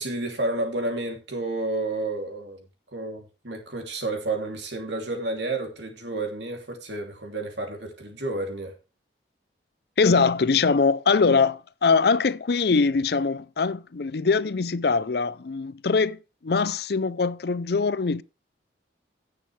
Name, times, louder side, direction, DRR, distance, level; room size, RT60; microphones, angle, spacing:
voice 1, 0.0-2.6 2.9-8.7, right 2 dB, 70° right, 2.9 m, -30 dB
voice 2, 10.0-16.2 16.4-18.2, left 4 dB, 60° left, 0.5 m, -22 dB
16.5 x 6.7 x 3.3 m
head